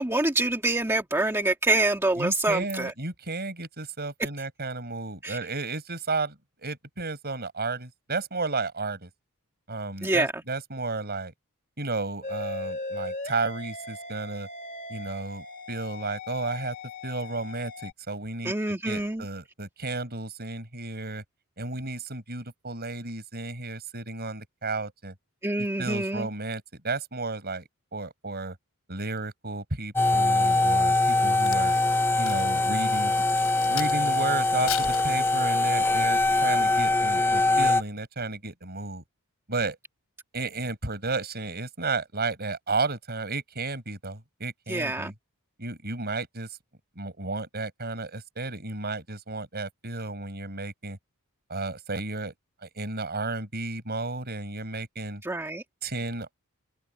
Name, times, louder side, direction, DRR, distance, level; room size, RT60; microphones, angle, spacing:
voice 1, 0.0-2.9 5.2-5.4 10.0-10.4 18.4-19.2 25.4-26.3 44.7-45.1 55.2-55.6, right 2 dB, 10° right, 1.7 m, -26 dB
voice 2, 2.2-9.1 9.7-11.3 11.8-14.5 14.9-16.8 17.0-21.2 21.6-25.1 25.6-28.6 28.9-31.8 32.2-33.1 33.7-39.0 39.5-39.8 40.3-45.1 45.6-46.6 47.0-51.0 51.5-52.3 52.6-55.2 55.8-56.3, right 3 dB, 45° right, 7.1 m, -33 dB
sound 1, 12.2-17.9, left 2 dB, 35° left, 2.3 m, -38 dB
sound 2, 30.0-37.8, left 2 dB, 10° left, 0.6 m, -23 dB
Crack, 31.1-34.2 34.6-35.8 36.3-36.5, left 10 dB, 70° left, 7.6 m, -37 dB
open air
head